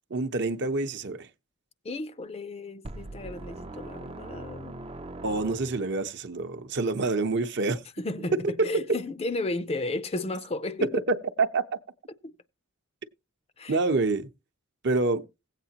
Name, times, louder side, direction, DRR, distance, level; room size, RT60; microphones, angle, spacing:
voice 1, 0.1-1.3 5.2-7.8 8.6-8.7 11.1-11.8 13.7-14.3 14.8-15.2, right 3 dB, 55° right, 0.8 m, -27 dB
voice 2, 1.8-4.8 8.0-11.0 12.2-12.3 13.6-13.8, left 2 dB, 30° left, 0.5 m, -33 dB
sound 1, 2.8-6.1, right 2 dB, 25° right, 0.5 m, -41 dB
16.5 x 8.3 x 2.9 m
head